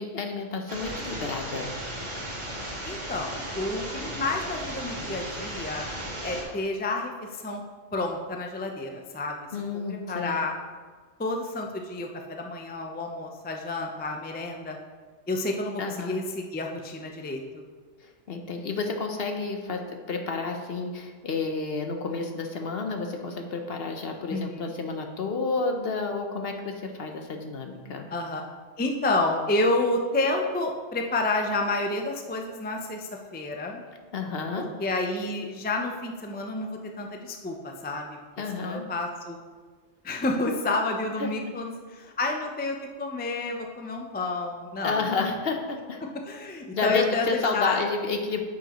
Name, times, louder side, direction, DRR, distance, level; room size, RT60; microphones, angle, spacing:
voice 1, 0.0-1.8 9.5-10.4 15.8-16.2 18.0-28.1 34.1-34.7 38.4-38.8 41.2-41.3 44.8-46.0 46.7-48.4, left 4 dB, 60° left, 4 dB, 1.0 m, -30 dB
sound 1, 0.7-6.4, right 1 dB, 85° right, 2.1 m, -35 dB
voice 2, 2.8-5.9 6.2-7.6 7.9-9.4 9.9-10.5 11.2-14.8 15.3-17.6 24.3-24.7 28.1-28.4 28.8-33.8 34.6-38.1 38.6-39.4 40.0-45.0 46.3-47.8, left 2 dB, 10° left, 2 dB, 0.4 m, -30 dB
9.1 x 7.5 x 3.0 m, 1.5 s
omnidirectional pair, 1.2 m